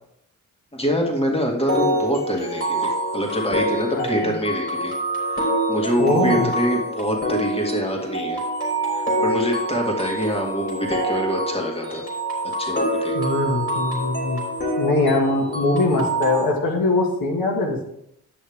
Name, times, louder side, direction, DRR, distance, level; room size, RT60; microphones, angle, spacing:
voice 1, 0.7-4.9 5.2-8.4 8.9-12.0 12.6-13.1, equal, 15° left, 0 dB, 2.2 m, -25 dB
sound 1, 1.7-16.5, right 1 dB, 35° left, 3.7 m, -26 dB
voice 2, 3.9-4.4 6.0-6.5 13.1-14.4 14.8-17.8, left 2 dB, 80° left, 1 dB, 1.9 m, -22 dB
10.5 x 6.4 x 3.6 m, 0.76 s
cardioid pair, 65°, 35 cm